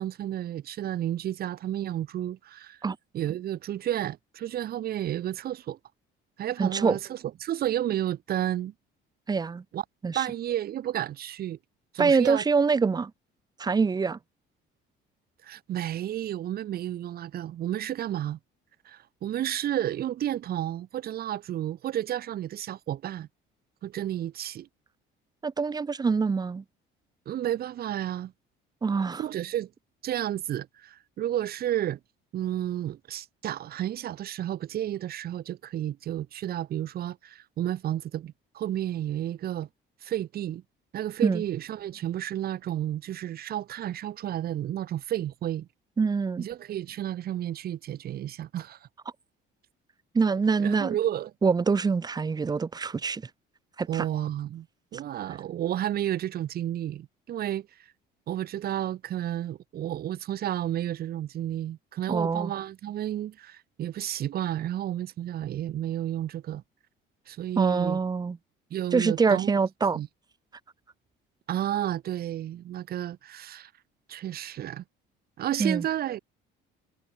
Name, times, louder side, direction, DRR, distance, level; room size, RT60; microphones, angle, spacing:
voice 1, 0.0-2.8 3.1-5.8 6.4-8.7 9.7-9.8 10.1-11.6 11.9-12.4 15.4-18.4 18.8-23.3 23.8-24.7 27.3-28.3 29.2-29.7 30.0-32.0 32.3-39.7 40.0-40.6 40.9-45.7 46.4-48.9 50.6-51.3 53.9-54.7 54.9-57.7 58.3-66.6 67.3-68.0 68.7-69.6 69.9-70.1 71.5-73.7 74.1-74.8 75.4-76.2, right 12 dB, 45° right, 5.7 m, -31 dB
voice 2, 6.6-7.0 9.3-9.6 10.0-10.2 12.0-13.1 13.6-14.2 25.4-26.6 28.8-29.2 41.2-41.4 46.0-46.5 50.1-51.0 51.4-53.2 53.8-54.1 62.1-62.5 67.6-68.4 68.9-70.0 75.6-75.8, right 5 dB, 20° right, 3.8 m, -25 dB
cardioid pair, 175°, 21 cm